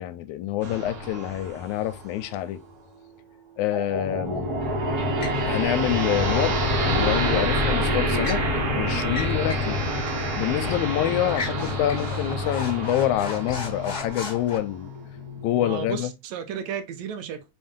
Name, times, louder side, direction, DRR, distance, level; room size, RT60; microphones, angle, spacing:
voice 1, 0.0-2.6 3.6-4.5 5.4-8.4 8.8-9.8 10.4-14.9 15.4-16.1, left 12 dB, 80° left, 1.9 m, -26 dB
sound 1, 0.6-2.6 3.7-16.0, equal, 50° right, 1.1 m, -27 dB
sound 2, 5.2-5.4 7.6-8.5 9.1-9.7 10.1-10.2 10.7-10.9 11.3-14.6, left 4 dB, 35° left, 1.4 m, -36 dB
voice 2, 15.6-17.5, right 7 dB, 75° right, 1.9 m, -33 dB
5.4 x 2.6 x 3.5 m
omnidirectional pair, 3.5 m